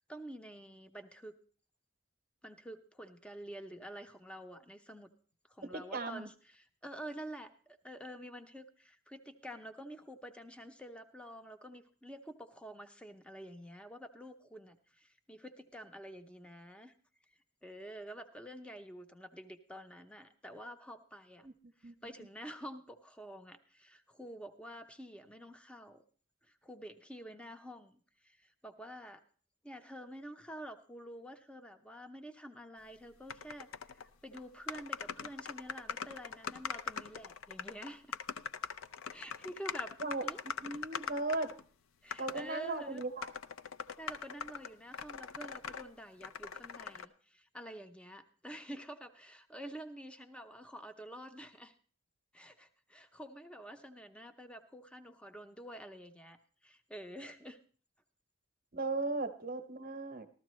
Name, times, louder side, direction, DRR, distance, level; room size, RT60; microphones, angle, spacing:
voice 1, 0.1-1.4 2.4-5.1 5.5-16.9 17.6-21.5 21.8-26.0 26.4-29.2 29.6-38.2 39.1-39.9 40.2-40.4 42.0-43.0 44.0-51.7 52.3-56.4 56.6-57.6, right 1 dB, 5° left, 8 dB, 0.6 m, -48 dB
voice 2, 5.7-6.3 21.4-21.5 21.8-21.9 40.0-40.3 40.6-41.5 42.2-43.3 58.7-60.3, right 3 dB, 45° right, 7 dB, 0.8 m, -37 dB
sound 1, 33.3-34.1 34.3-34.4 34.7-41.6 42.1-42.4 43.0-45.8 46.2-47.1, left 6 dB, 80° left, 0.5 m, -42 dB
14.5 x 13.0 x 3.1 m, 0.42 s
head